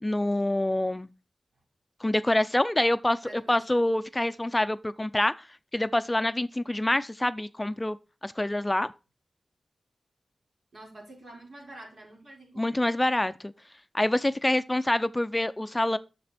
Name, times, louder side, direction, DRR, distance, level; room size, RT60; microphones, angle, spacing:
voice 1, 0.0-1.1 2.0-3.2 3.5-5.5 5.7-8.0 8.2-8.9 12.6-13.5 13.9-16.0, left 1 dB, 20° left, 0.5 m, -26 dB
voice 2, 3.2-3.8 10.7-12.9, right 1 dB, 70° right, 4.4 m, -48 dB
7.7 x 6.8 x 4.2 m
wide cardioid pair, 65°, 0 cm